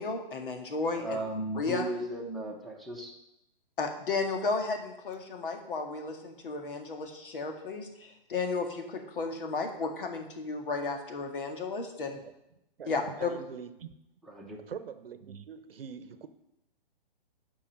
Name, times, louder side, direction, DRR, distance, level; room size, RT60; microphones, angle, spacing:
voice 1, 0.0-1.2 1.5-1.9 3.8-12.2 12.8-13.3, left 4 dB, 65° left, 4 dB, 1.9 m, -33 dB
voice 2, 0.6-3.1 14.2-14.6, right 2 dB, ahead, 1 dB, 1.1 m, -36 dB
voice 3, 12.8-13.9 14.7-16.3, right 7 dB, 75° right, 12 dB, 0.9 m, -43 dB
8.6 x 5.5 x 6.5 m, 0.85 s
hypercardioid pair, 140°, 29 cm